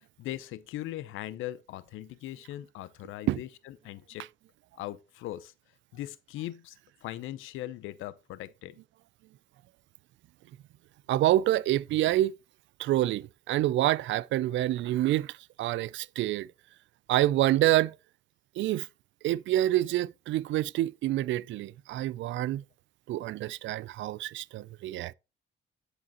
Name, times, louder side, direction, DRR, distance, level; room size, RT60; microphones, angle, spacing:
voice 1, 0.2-4.3 4.8-5.5 5.9-6.8 7.0-8.7, left 14 dB, 90° left, 0.7 m, -39 dB
voice 2, 11.1-12.3 12.8-16.5 17.1-17.9 18.6-18.9 19.2-22.6 23.1-25.1, right 14 dB, 75° right, 0.4 m, -27 dB
9.8 x 5.0 x 2.9 m
cardioid pair, 90°, 20 cm